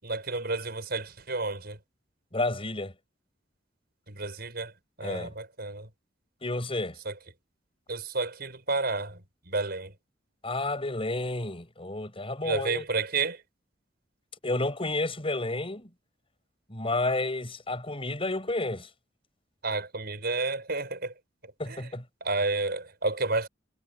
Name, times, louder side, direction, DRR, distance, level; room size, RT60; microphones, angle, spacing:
voice 1, 0.0-1.8 4.1-4.7 5.0-5.9 7.1-7.2 7.9-9.9 12.4-13.4 19.6-21.1 21.7-21.8 22.2-23.5, right 3 dB, 55° right, 5.7 m, -31 dB
voice 2, 2.3-2.9 5.0-5.3 6.4-7.0 10.4-12.8 14.4-15.9 16.7-18.9 21.6-22.0, left 2 dB, 30° left, 6.4 m, -31 dB
head